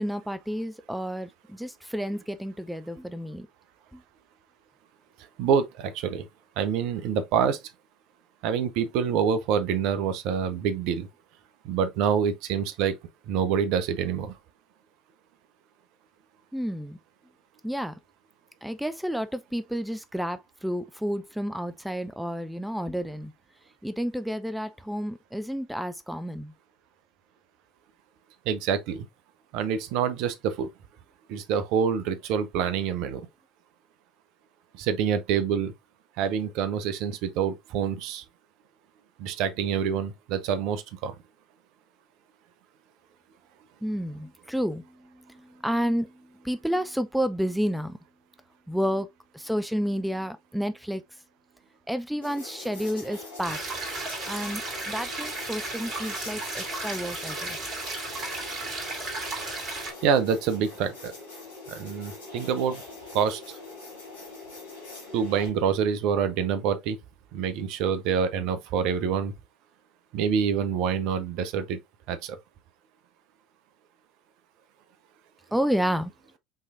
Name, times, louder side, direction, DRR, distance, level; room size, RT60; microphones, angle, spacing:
voice 1, 0.0-3.5 3.9-4.0 16.5-17.0 17.6-18.0 18.6-23.3 23.8-26.5 43.8-48.0 48.7-49.1 49.3-51.0 51.9-53.6 54.2-57.6 75.5-76.1, equal, ahead, 0.5 m, -30 dB
voice 2, 5.4-6.3 6.6-7.6 8.4-11.1 11.6-12.9 13.3-14.3 28.5-29.1 29.5-30.7 31.3-33.2 34.7-35.7 36.2-38.2 39.2-41.1 59.8-61.1 61.7-62.8 63.1-63.4 65.1-67.0 67.3-69.3 70.1-71.8 72.1-72.4, right 7 dB, 60° right, 0.7 m, -26 dB
sound 1, 52.2-65.5, left 3 dB, 85° left, 2.1 m, -43 dB
sound 2, 53.4-59.9, right 3 dB, 40° right, 2.5 m, -34 dB
5.6 x 3.2 x 2.5 m
figure-of-eight pair, 70°, 0 cm